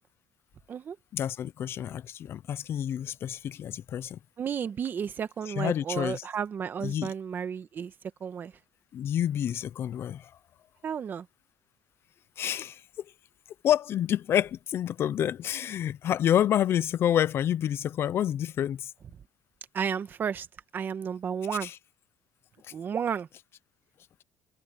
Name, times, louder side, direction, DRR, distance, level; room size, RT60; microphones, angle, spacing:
voice 1, 1.1-4.2 5.4-6.3 6.8-7.1 8.9-10.3 12.4-12.8 13.6-18.9 21.5-21.8, left 10 dB, 50° left, 0.7 m, -28 dB
voice 2, 4.4-7.9 8.2-8.5 10.8-11.2 19.7-20.5 20.7-21.7 22.7-23.3, right 7 dB, 40° right, 1.7 m, -32 dB
cardioid pair, 115°, 5 cm